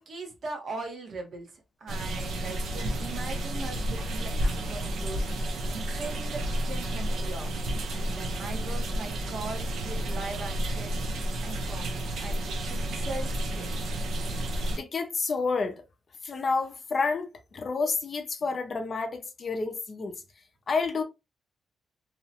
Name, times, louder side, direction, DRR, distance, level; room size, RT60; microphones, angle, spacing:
voice 1, 0.0-7.6 7.9-11.0 11.4-13.7, right 3 dB, 50° right, 0.9 m, -40 dB
sound 1, 1.9-14.8, right 1 dB, 80° right, 0.6 m, -31 dB
voice 2, 14.8-15.8 16.2-17.3 17.5-20.2 20.7-21.0, left 4 dB, 40° left, 0.4 m, -29 dB
2.7 x 2.1 x 2.7 m
wide cardioid pair, 150°, 0 cm